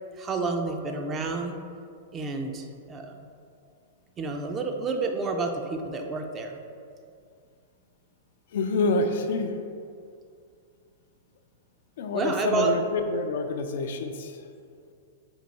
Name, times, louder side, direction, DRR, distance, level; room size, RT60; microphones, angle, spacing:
voice 1, 0.2-1.6 2.1-3.1 4.2-6.6 12.1-12.7, right 4 dB, 25° right, 4 dB, 0.4 m, -29 dB
voice 2, 8.5-9.6 12.0-14.5, left 3 dB, 70° left, 6 dB, 0.3 m, -27 dB
4.5 x 2.2 x 4.0 m, 2.3 s
hypercardioid pair, 125°, 0 cm